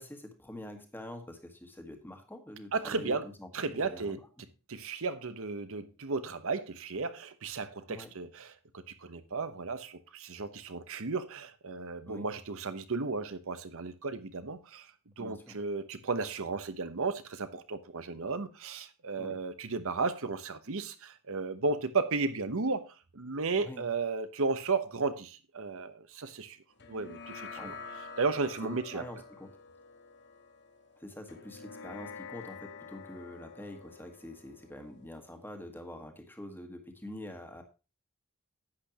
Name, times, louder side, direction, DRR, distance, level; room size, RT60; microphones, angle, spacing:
voice 1, 0.0-4.2 7.9-8.1 12.0-12.3 15.2-15.6 19.2-19.4 23.6-23.8 27.6-27.8 28.6-29.5 31.0-37.6, left 1 dB, 10° left, 1.6 m, -46 dB
voice 2, 2.7-3.3 3.5-4.2 4.7-26.6 26.9-27.7 28.2-29.0, right 4 dB, 65° right, 1.0 m, -34 dB
sound 1, 26.8-35.5, left 5 dB, 55° left, 1.1 m, -48 dB
11.0 x 8.7 x 2.9 m
head